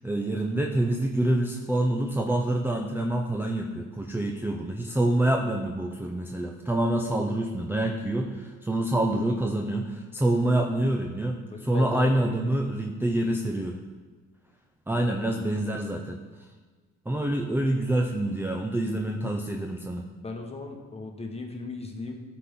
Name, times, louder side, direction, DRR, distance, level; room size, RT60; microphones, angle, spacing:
voice 1, 0.0-13.8 14.9-16.2 17.1-20.1, right 1 dB, 5° right, 1 dB, 0.6 m, -26 dB
voice 2, 11.5-12.3 14.9-15.3 20.1-22.2, left 3 dB, 20° left, 2 dB, 1.2 m, -37 dB
11.5 x 4.3 x 3.7 m, 1.4 s
cardioid pair, 90°, 30 cm